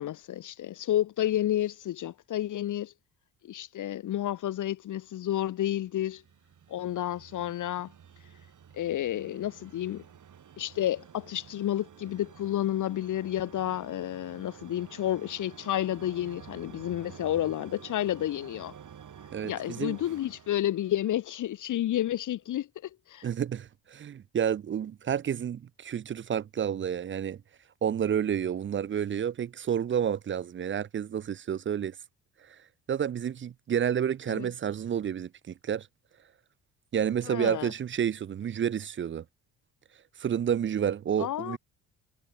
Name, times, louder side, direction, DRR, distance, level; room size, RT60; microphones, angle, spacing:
voice 1, 0.0-2.9 3.4-6.2 6.7-7.9 8.7-10.0 10.6-18.7 19.4-23.3 34.3-34.5 37.3-37.7 41.2-41.6, left 12 dB, 50° left, 0.7 m, -31 dB
sound 1, 5.3-21.5, right 8 dB, 50° right, 3.1 m, -51 dB
voice 2, 19.3-20.0 23.2-27.4 27.8-31.9 32.9-35.9 36.9-39.2 40.2-41.6, right 8 dB, 30° right, 0.5 m, -30 dB
supercardioid pair, 60°, 40 cm